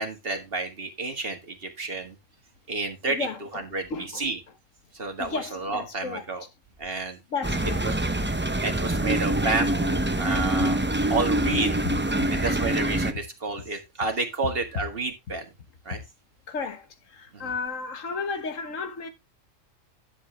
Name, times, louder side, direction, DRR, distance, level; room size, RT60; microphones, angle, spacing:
voice 1, 0.0-2.2 2.7-3.3 3.5-4.4 4.9-6.4 6.8-7.2 7.8-8.0 8.6-10.8 11.1-11.7 12.3-15.5 15.9-16.0 17.3-17.5, right 3 dB, 45° right, 2.0 m, -30 dB
voice 2, 3.1-3.4 3.9-4.2 5.2-6.2 7.3-7.8 10.6-10.7 12.2-12.3 15.9-16.0 16.5-19.1, left 4 dB, 80° left, 1.7 m, -33 dB
sound 1, 7.4-13.1, right 1 dB, 15° right, 0.5 m, -25 dB
10.5 x 7.4 x 3.2 m
omnidirectional pair, 1.3 m